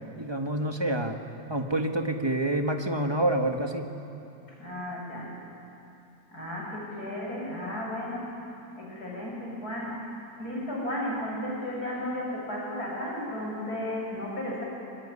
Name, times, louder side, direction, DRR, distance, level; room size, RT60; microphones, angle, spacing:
voice 1, 0.1-1.2 1.5-3.9, right 1 dB, 15° right, 4 dB, 1.5 m, -27 dB
voice 2, 4.6-5.3 6.3-8.3 8.8-10.0 10.4-14.6, left 1 dB, 55° left, -3 dB, 7.1 m, -34 dB
24.0 x 23.0 x 9.8 m, 2.8 s
omnidirectional pair, 1.9 m